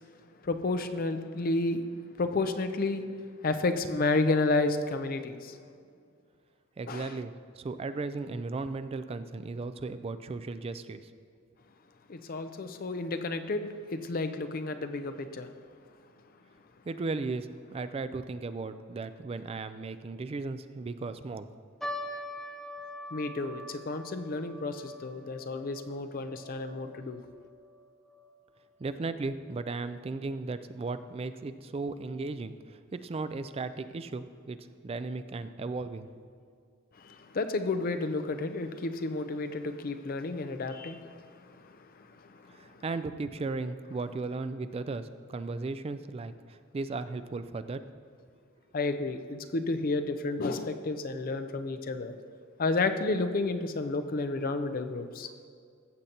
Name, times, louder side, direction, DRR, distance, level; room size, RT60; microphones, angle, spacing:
voice 1, 0.4-1.8 2.2-3.1 3.4-5.6 6.9-7.2 12.1-15.5 23.1-27.2 37.0-42.7 48.7-52.2 52.6-55.3, left 3 dB, 45° left, 8 dB, 0.5 m, -31 dB
voice 2, 6.8-11.0 16.9-21.5 28.8-34.6 34.8-36.1 42.5-47.8, right 3 dB, 30° right, 11 dB, 0.3 m, -36 dB
sound 1, 21.8-28.3 28.6-28.7 29.4-29.7 30.3-30.4 30.7-30.9, left 1 dB, ahead, 0.9 m, -43 dB
15.0 x 6.6 x 2.9 m, 2.2 s
head